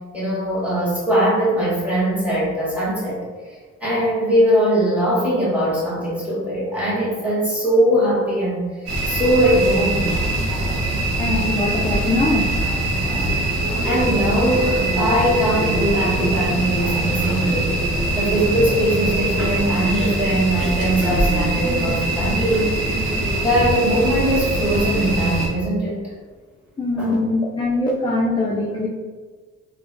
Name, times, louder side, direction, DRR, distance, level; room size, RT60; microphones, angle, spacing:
voice 1, 0.1-3.2 3.8-8.7 9.1-10.2 13.2-13.3 13.8-17.7 18.1-22.7 23.4-26.0 27.0-27.2, right 1 dB, 5° right, -8 dB, 1.5 m, -20 dB
sound 1, 8.9-25.5, right 1 dB, 50° right, 0.9 m, -22 dB
voice 2, 11.2-12.5 26.8-28.9, left 2 dB, 15° left, -3 dB, 0.3 m, -22 dB
3.4 x 2.2 x 2.5 m, 1.5 s
cardioid pair, 90°, 30 cm